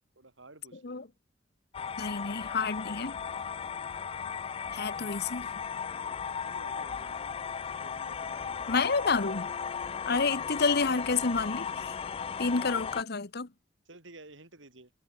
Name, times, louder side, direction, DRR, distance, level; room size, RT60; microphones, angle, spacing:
voice 1, 0.2-1.1 3.1-4.3 6.4-7.4 7.8-8.7 11.7-12.0 13.9-14.9, right 2 dB, 75° right, 3.9 m, -54 dB
sound 1, 1.7-13.0, left 6 dB, 30° left, 0.3 m, -36 dB
voice 2, 2.0-3.2 4.7-5.5 8.7-9.5 10.1-11.9 12.4-13.5, left 4 dB, 55° left, 1.1 m, -29 dB
head